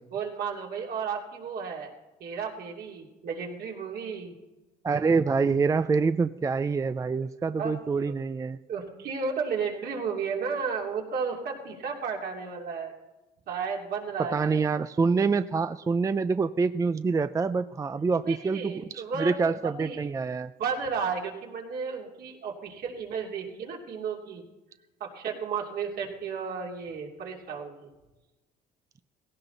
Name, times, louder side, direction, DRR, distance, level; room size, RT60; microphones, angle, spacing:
voice 1, 0.1-1.9 2.2-4.3 7.6-7.8 8.7-12.9 13.5-14.4 18.2-19.3 19.6-20.0 20.6-24.4 25.0-27.9, right 5 dB, 65° right, 0 dB, 3.0 m, -33 dB
voice 2, 4.8-8.6 14.3-20.5, right 4 dB, 20° right, 12 dB, 0.4 m, -26 dB
17.5 x 17.0 x 4.0 m, 1.1 s
cardioid pair, 110°, 17 cm